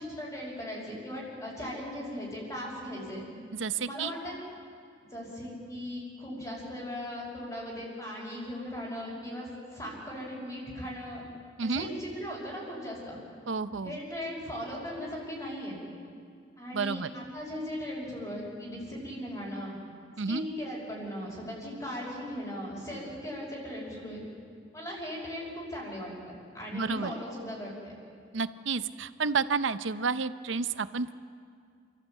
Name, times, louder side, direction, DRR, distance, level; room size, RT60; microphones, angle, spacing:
voice 1, 0.0-3.2 3.8-4.4 5.1-11.2 11.6-13.2 13.8-15.8 16.6-19.8 20.3-24.2 24.7-28.0, equal, 20° left, -5 dB, 5.6 m, -38 dB
voice 2, 3.5-4.1 11.6-11.9 13.5-14.0 16.7-17.1 20.2-20.4 26.7-27.1 28.3-31.1, right 5 dB, 90° right, 13 dB, 0.7 m, -30 dB
28.5 x 14.0 x 8.4 m, 2.2 s
head